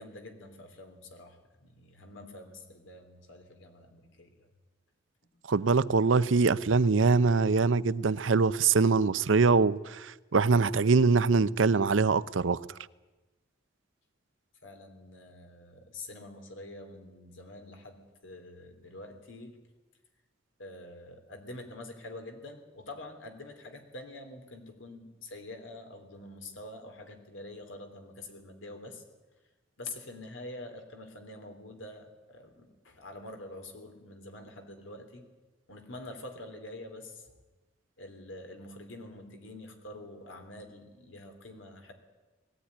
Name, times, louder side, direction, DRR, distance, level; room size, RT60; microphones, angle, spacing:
voice 1, 0.0-4.5 14.6-19.6 20.6-29.0 29.8-35.3 35.7-37.3 38.0-41.9, left 2 dB, 85° left, 3.6 m, -46 dB
voice 2, 5.5-12.6, right 4 dB, 80° right, 0.7 m, -23 dB
20.0 x 16.5 x 9.9 m
head